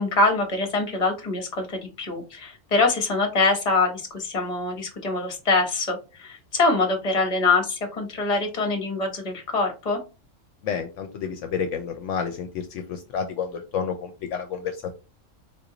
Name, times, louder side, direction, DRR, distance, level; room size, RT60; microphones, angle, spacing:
voice 1, 0.0-10.0, left 3 dB, 30° left, 3 dB, 1.0 m, -24 dB
voice 2, 10.6-14.9, left 6 dB, 70° left, 6 dB, 0.9 m, -30 dB
4.1 x 2.5 x 2.8 m, 0.31 s
omnidirectional pair, 1.4 m